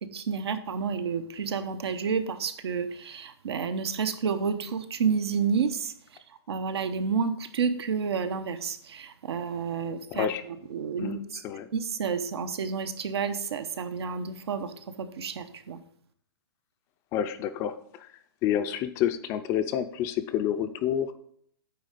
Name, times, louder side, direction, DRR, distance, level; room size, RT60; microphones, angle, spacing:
voice 1, 0.0-5.9 6.5-11.4 11.7-15.8, right 6 dB, 80° right, 10 dB, 1.0 m, -30 dB
voice 2, 10.1-10.4 11.0-11.2 11.4-11.7 17.1-18.1 18.4-21.1, left 10 dB, 20° left, 10 dB, 0.4 m, -28 dB
9.0 x 3.7 x 6.6 m, 0.65 s
hypercardioid pair, 160°, 13 cm